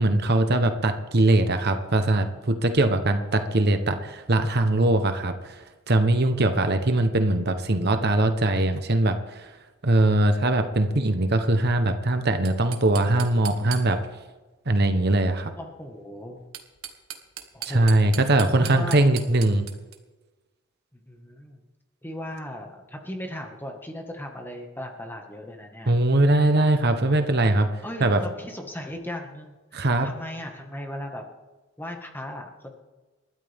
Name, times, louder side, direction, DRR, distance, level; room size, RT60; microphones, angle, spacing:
voice 1, 0.0-5.6 5.9-9.5 9.8-14.0 14.7-15.5 17.6-19.7 25.9-27.7 28.0-28.2 29.7-30.1, right 2 dB, 50° right, 7 dB, 1.1 m, -21 dB
sound 1, 12.4-14.2 16.3-20.0, right 10 dB, 85° right, 1.7 m, -39 dB
voice 2, 15.6-16.4 17.5-18.2 18.6-19.0 20.9-21.6 22.0-25.9 27.8-31.3 31.8-32.8, left 1 dB, 10° left, 2 dB, 1.7 m, -37 dB
28.5 x 13.0 x 3.6 m, 1.2 s
head